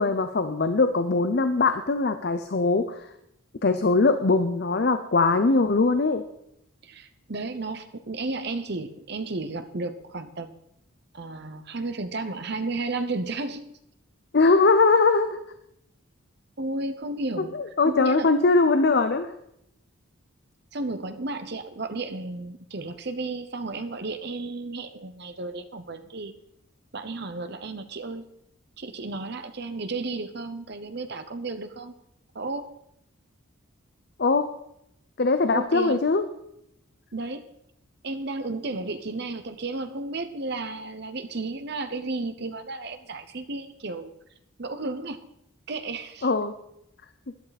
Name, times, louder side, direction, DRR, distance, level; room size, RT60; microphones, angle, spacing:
voice 1, 0.0-3.1 3.6-6.2 14.3-15.4 17.4-19.3 34.2-34.5 35.2-36.2 46.2-46.5, left 3 dB, 50° left, 10 dB, 0.6 m, -21 dB
voice 2, 6.8-10.6 11.1-13.7 16.6-18.3 20.7-26.3 26.9-28.2 28.8-31.9 32.3-32.7 35.5-36.0 37.1-37.4 38.0-44.1 44.6-45.2 45.7-46.3, right 3 dB, 50° right, 9 dB, 0.9 m, -33 dB
12.5 x 11.5 x 4.2 m, 0.78 s
head